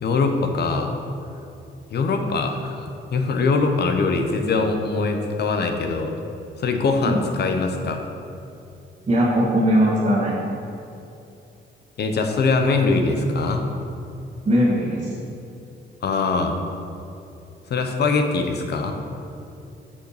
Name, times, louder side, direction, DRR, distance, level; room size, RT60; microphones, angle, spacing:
voice 1, 0.0-0.9 1.9-6.1 6.6-8.0 12.0-13.7 16.0-16.6 17.7-19.0, left 3 dB, 55° left, 4 dB, 0.9 m, -22 dB
voice 2, 9.1-10.3 14.4-15.1, equal, 30° right, -7 dB, 1.6 m, -19 dB
6.6 x 5.6 x 4.9 m, 2.7 s
cardioid pair, 90°, 20 cm